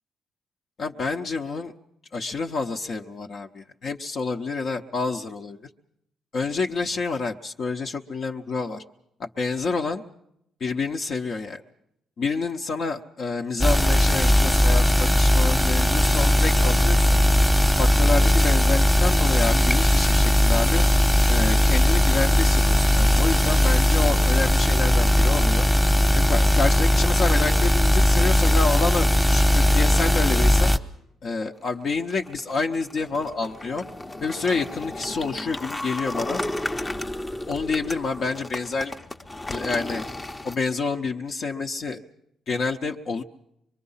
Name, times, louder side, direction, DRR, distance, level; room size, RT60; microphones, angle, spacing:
voice 1, 0.8-1.7 2.1-5.6 6.3-8.8 9.2-10.0 10.6-11.6 12.2-17.2 17.8-20.8 21.3-25.7 26.1-30.7 31.2-33.8 34.2-36.4 37.5-38.9 39.5-40.0 40.4-42.0 42.5-43.2, left 4 dB, 55° left, 2 dB, 0.9 m, -28 dB
sound 1, 13.6-30.8, left 1 dB, 5° left, 1.1 m, -18 dB
sound 2, 31.9-40.6, left 1 dB, 20° left, 0.8 m, -34 dB
24.5 x 22.5 x 5.7 m, 0.78 s
cardioid pair, 90°, 0 cm